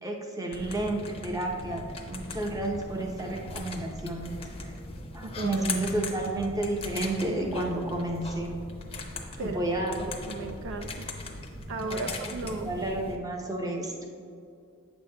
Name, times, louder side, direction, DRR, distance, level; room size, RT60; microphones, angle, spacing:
voice 1, 0.0-4.3 4.6-4.7 5.1-8.5 9.4-9.9 11.8-12.4 12.6-13.9, right 2 dB, 15° right, 1 dB, 0.7 m, -31 dB
sound 1, 0.5-13.2, left 2 dB, 25° left, 0.6 m, -39 dB
voice 2, 5.2-5.7 9.4-9.6 10.0-11.1 11.7-12.7, right 3 dB, 60° right, 5 dB, 0.4 m, -35 dB
9.0 x 7.0 x 2.2 m, 2.4 s
head